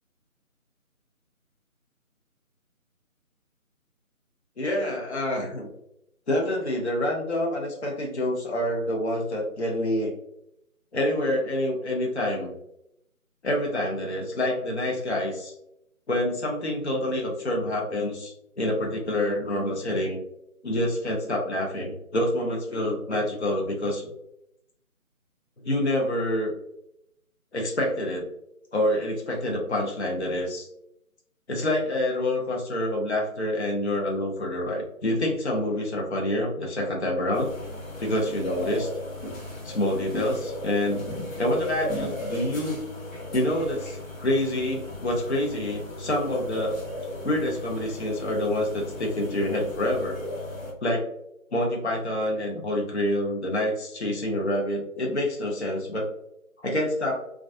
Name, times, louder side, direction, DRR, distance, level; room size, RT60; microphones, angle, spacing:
voice 1, 4.6-5.7 6.3-10.1 10.9-12.5 13.4-15.5 16.1-20.2 20.6-24.1 25.6-26.5 27.5-28.3 28.7-30.7 31.5-37.5 38.0-38.9 39.6-41.1 41.4-42.8 43.3-46.8 47.2-50.2 50.8-51.0 51.5-56.1 56.6-57.2, left 1 dB, 50° left, -1 dB, 0.6 m, -27 dB
sound 1, 37.3-50.7, left 1 dB, 65° left, 1.1 m, -36 dB
2.3 x 2.2 x 2.5 m, 0.78 s
figure-of-eight pair, 175°, 43 cm